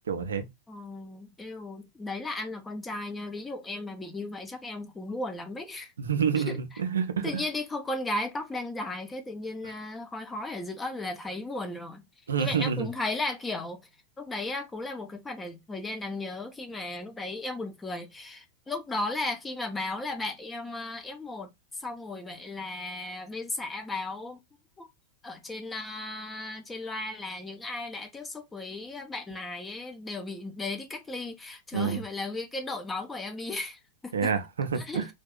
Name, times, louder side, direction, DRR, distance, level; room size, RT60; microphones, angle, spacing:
voice 1, 0.1-0.5 6.0-7.4 12.3-12.9 31.7-32.0 34.1-35.0, right 6 dB, 70° right, 0.7 m, -28 dB
voice 2, 0.7-5.9 6.3-6.6 7.2-12.0 12.4-13.8 14.2-24.4 24.8-24.9 25.2-34.3 34.7-35.1, left 2 dB, 15° left, 0.8 m, -35 dB
3.5 x 2.7 x 3.9 m
figure-of-eight pair, 90°, 0 cm